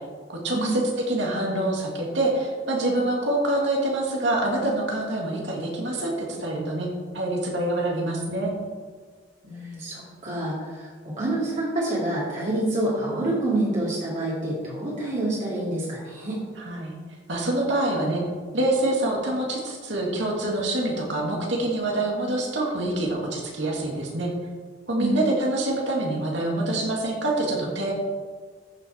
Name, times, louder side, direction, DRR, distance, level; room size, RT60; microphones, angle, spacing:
voice 1, 0.3-0.8 1.1-8.5 16.6-16.9 17.3-18.2 18.5-24.3 24.9-27.9, right 1 dB, 70° right, -1 dB, 2.5 m, -26 dB
voice 2, 9.4-16.4 25.0-25.2, right 1 dB, 40° right, -7 dB, 2.5 m, -27 dB
14.0 x 6.0 x 4.7 m, 1.5 s
head